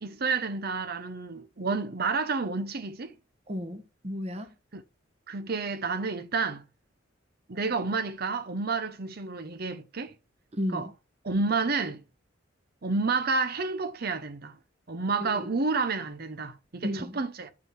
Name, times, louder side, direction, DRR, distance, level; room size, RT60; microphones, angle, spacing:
voice 1, 0.0-3.1 4.7-4.8 5.3-6.6 7.5-10.1 10.7-10.9 11.2-12.0 12.8-14.6 14.9-17.5, right 4 dB, 50° right, 0.8 m, -30 dB
voice 2, 3.5-4.5 10.5-10.9 15.2-15.5 16.8-17.2, equal, 35° right, 1.4 m, -34 dB
7.5 x 6.0 x 4.6 m
head